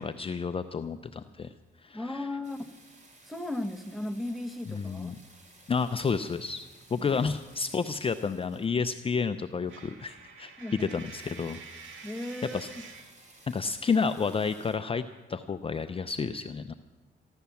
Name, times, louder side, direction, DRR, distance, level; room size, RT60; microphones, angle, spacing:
voice 1, 0.0-1.5 1.8-2.4 4.7-5.2 5.7-11.6 12.5-12.7 13.5-15.0 15.3-16.7, left 5 dB, 30° left, 9 dB, 0.5 m, -30 dB
voice 2, 1.9-2.6 3.3-5.1 7.0-7.2 10.6-10.9 12.0-12.8, left 1 dB, ahead, 4 dB, 1.1 m, -36 dB
sound 1, 2.4-9.2 9.8-9.9 10.2-10.3 10.5-10.6 10.7-14.8, right 2 dB, 40° right, 3.1 m, -57 dB
Coin (dropping), 9.7-13.2, right 5 dB, 75° right, 1.9 m, -47 dB
15.0 x 11.5 x 7.0 m, 1.2 s
cardioid pair, 90°, 20 cm